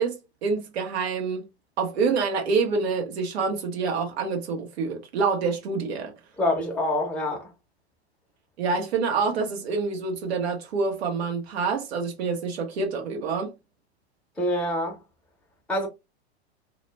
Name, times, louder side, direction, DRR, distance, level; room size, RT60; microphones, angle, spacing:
voice 1, 0.0-1.4 1.8-6.1 8.6-13.5, right 4 dB, 70° right, 0.9 m, -27 dB
voice 2, 6.4-7.5 14.4-15.0 15.7-15.9, left 1 dB, 5° left, 0.7 m, -26 dB
2.4 x 2.1 x 3.0 m
hypercardioid pair, 100°, 33 cm